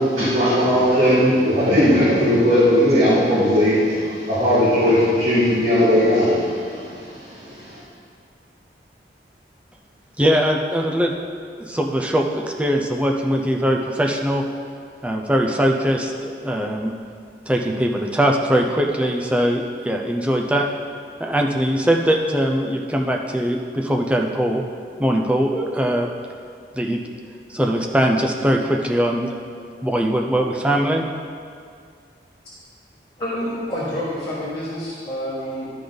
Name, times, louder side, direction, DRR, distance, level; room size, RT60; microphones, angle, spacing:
voice 1, 0.0-7.8, equal, 40° right, -12 dB, 2.1 m, -18 dB
voice 2, 10.2-14.4 15.0-16.9 17.5-20.7 21.2-24.6 25.0-26.1 26.7-27.0 27.5-29.4 29.8-31.1, equal, 5° right, 2 dB, 0.5 m, -21 dB
voice 3, 33.2-35.7, equal, 25° left, -11 dB, 1.6 m, -28 dB
12.0 x 5.0 x 4.0 m, 2.2 s
head